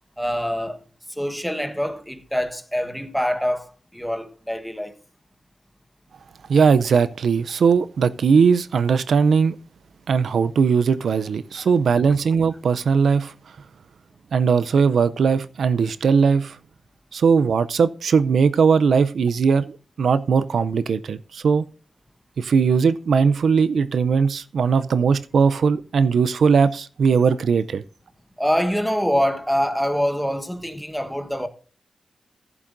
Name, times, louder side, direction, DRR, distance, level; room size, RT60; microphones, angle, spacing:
voice 1, 0.2-0.8 1.1-5.0 11.5-11.7 28.4-31.5, equal, ahead, 1.2 m, -25 dB
voice 2, 6.5-9.5 10.1-13.3 14.3-16.6 17.1-21.6 22.4-27.8, right 5 dB, 75° right, 0.5 m, -19 dB
14.5 x 11.0 x 2.6 m
wide cardioid pair, 90°, 0 cm